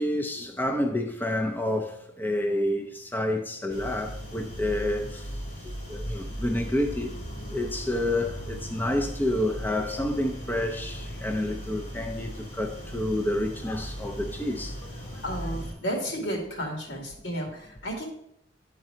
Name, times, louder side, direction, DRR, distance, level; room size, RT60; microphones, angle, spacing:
voice 1, 0.0-5.3 5.9-7.1 7.5-14.8 15.1-15.2, left 1 dB, 10° left, 0.5 m, -29 dB
sound 1, 3.7-15.7, equal, 40° left, 3.0 m, -38 dB
voice 2, 15.2-18.1, equal, 70° left, 2.3 m, -32 dB
11.0 x 3.9 x 4.4 m
head